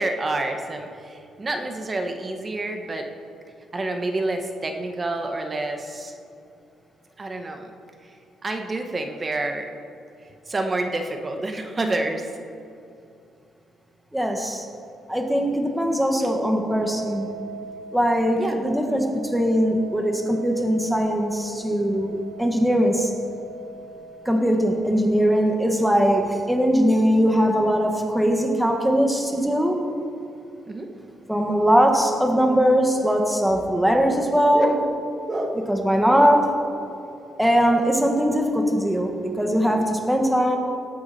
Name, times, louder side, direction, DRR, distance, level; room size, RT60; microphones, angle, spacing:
voice 1, 0.0-3.1 3.7-6.1 7.2-7.7 8.4-9.7 10.5-12.2 18.3-18.6 30.7-30.9 34.5-34.9 35.3-35.7 36.1-36.3, right 2 dB, 30° right, 5 dB, 1.3 m, -28 dB
voice 2, 14.1-14.7 15.1-17.4 17.9-23.1 24.3-29.8 31.3-34.7 35.7-36.5 37.4-40.6, equal, 5° right, 2 dB, 1.6 m, -21 dB
sound 1, 16.7-25.3, right 6 dB, 80° right, 2.3 m, -41 dB
18.5 x 8.5 x 4.3 m, 2.6 s
cardioid pair, 90°, 0 cm